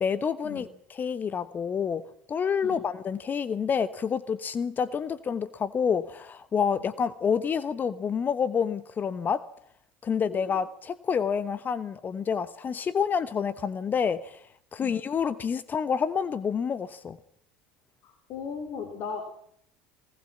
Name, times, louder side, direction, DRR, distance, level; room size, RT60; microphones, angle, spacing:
voice 1, 0.0-9.4 10.0-14.4 14.7-17.2, left 6 dB, 35° left, 15 dB, 1.1 m, -28 dB
voice 2, 18.0-19.2, left 6 dB, 55° left, 5 dB, 4.0 m, -37 dB
21.0 x 19.5 x 7.2 m, 0.65 s
hypercardioid pair, 70°, 6 cm